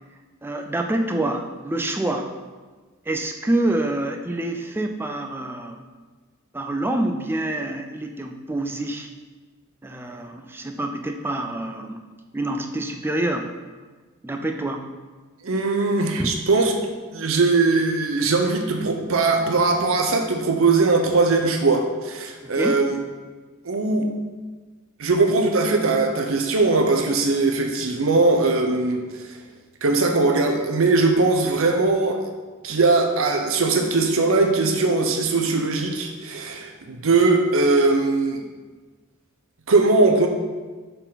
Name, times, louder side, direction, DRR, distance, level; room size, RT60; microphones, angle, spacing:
voice 1, 0.4-2.3 3.1-5.9 6.5-9.1 9.8-12.0 12.3-13.5 14.2-14.9 16.2-16.3 22.4-22.8, right 1 dB, 10° right, 4 dB, 0.4 m, -26 dB
voice 2, 15.4-16.7 17.1-23.0 23.6-24.1 25.0-29.4 29.8-32.2 32.6-38.4 39.7-40.3, right 3 dB, 65° right, 4 dB, 0.7 m, -20 dB
6.5 x 3.9 x 4.0 m, 1.4 s
head